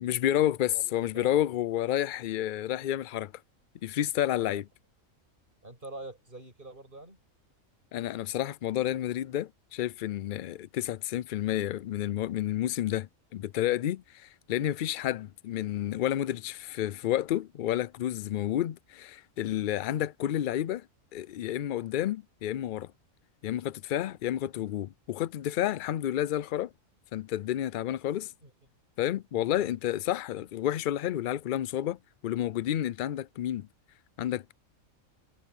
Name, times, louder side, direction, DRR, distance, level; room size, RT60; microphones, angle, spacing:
voice 1, 0.0-3.3 3.8-4.6 7.9-20.9 21.1-22.9 23.4-26.7 27.1-28.3 29.0-33.7 34.2-34.5, left 12 dB, 80° left, 0.4 m, -30 dB
voice 2, 0.6-1.4 1.7-1.9 4.4-4.6 5.6-7.2 28.4-28.5 29.3-29.8, right 2 dB, 40° right, 7.3 m, -46 dB
omnidirectional pair, 1.4 m